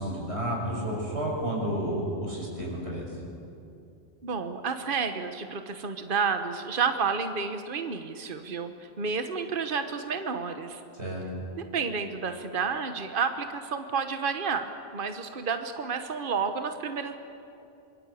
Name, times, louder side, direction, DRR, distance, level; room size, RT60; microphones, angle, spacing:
voice 1, 0.0-3.1 10.9-11.2, right 1 dB, 85° right, -2 dB, 6.6 m, -31 dB
voice 2, 4.2-10.8 11.7-17.2, right 5 dB, 55° right, 7 dB, 1.4 m, -30 dB
25.0 x 21.5 x 8.5 m, 2.7 s
omnidirectional pair, 1.1 m